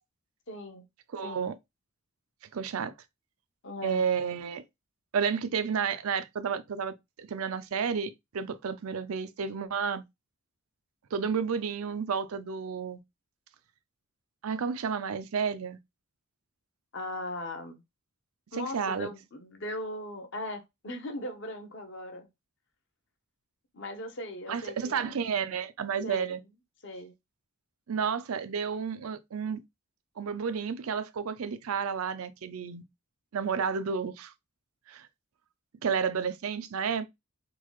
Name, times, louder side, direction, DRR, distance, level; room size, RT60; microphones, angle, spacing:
voice 1, 0.5-0.8 1.2-1.5 3.6-4.0 16.9-17.8 18.5-22.3 23.7-25.2 26.0-26.4 26.8-27.1, left 1 dB, 60° left, 0.8 m, -39 dB
voice 2, 1.1-1.5 2.5-2.9 3.8-4.6 5.1-10.0 11.1-13.0 14.4-15.8 18.6-19.1 24.5-26.4 27.9-29.6 30.2-32.8 33.3-34.3 34.9-35.1 35.8-37.1, right 6 dB, 85° right, 0.5 m, -31 dB
3.8 x 2.3 x 3.1 m
head